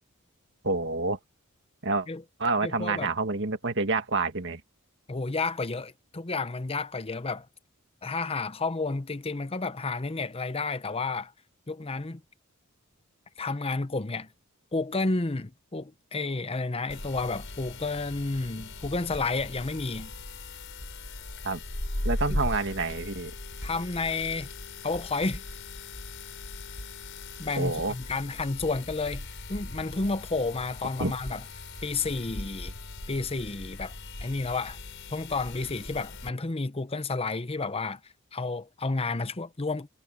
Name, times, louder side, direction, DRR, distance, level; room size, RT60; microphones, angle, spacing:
voice 1, 0.6-1.2 1.8-2.1 2.4-4.6 21.4-21.6 22.0-23.3 27.6-27.9 31.0-31.1, right 3 dB, 55° right, 1.9 m, -28 dB
voice 2, 2.6-3.1 5.1-7.5 8.0-11.3 11.7-12.2 13.4-14.3 14.7-20.1 22.3-22.4 23.6-24.5 24.8-25.4 27.4-31.4 31.8-32.7 33.1-33.9 34.2-34.8 35.1-38.0 38.3-39.9, left 3 dB, 25° left, 0.8 m, -31 dB
sound 1, 16.9-36.3, left 2 dB, 60° left, 6.0 m, -39 dB
head